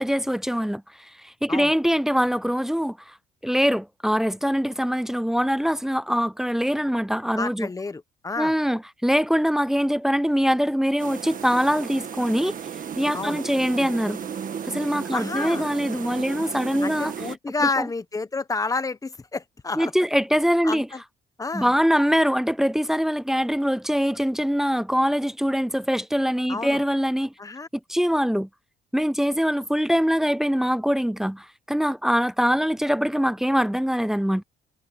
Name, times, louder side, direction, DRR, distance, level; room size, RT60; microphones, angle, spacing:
voice 1, 0.0-3.1 3.4-7.7 8.4-12.6 13.0-14.2 14.6-17.1 17.6-17.9 19.8-20.9 21.5-27.3 27.9-28.5 28.9-34.4, equal, ahead, 0.3 m, -23 dB
voice 2, 7.4-8.5 13.1-13.4 15.1-15.6 16.8-19.9 20.6-21.0 21.4-21.7 26.5-26.8 27.4-27.7, left 3 dB, 20° left, 1.0 m, -29 dB
sound 1, 11.0-17.4, right 7 dB, 45° right, 1.6 m, -34 dB
cardioid pair, 110°, 19 cm